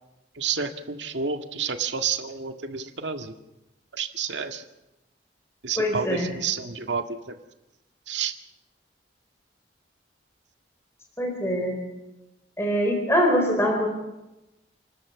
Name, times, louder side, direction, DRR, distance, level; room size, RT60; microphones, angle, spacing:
voice 1, 0.4-3.3 3.9-4.6 5.6-7.3 8.1-8.3, right 6 dB, 90° right, 6 dB, 1.9 m, -30 dB
voice 2, 5.7-6.3 11.2-11.8 12.6-13.9, equal, 15° left, 2 dB, 4.2 m, -23 dB
28.5 x 13.5 x 8.5 m, 0.98 s
head